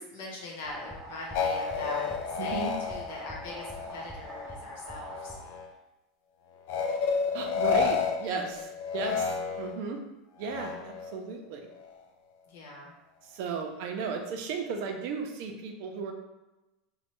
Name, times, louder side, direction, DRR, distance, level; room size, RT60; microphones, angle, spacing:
voice 1, 0.1-5.4 8.2-8.7 12.5-12.9, left 2 dB, 90° left, -2 dB, 0.9 m, -41 dB
sound 1, 0.6-5.7, right 1 dB, 5° right, 0.4 m, -44 dB
sound 2, 1.3-4.5 4.9-5.7 6.7-9.9 10.4-11.2, left 5 dB, 70° left, 0.3 m, -31 dB
voice 2, 2.4-2.7 7.3-10.0 10.4-11.7 13.3-16.1, right 5 dB, 65° right, 4 dB, 0.5 m, -35 dB
3.1 x 2.2 x 3.0 m, 1.0 s
supercardioid pair, 150°, 0 cm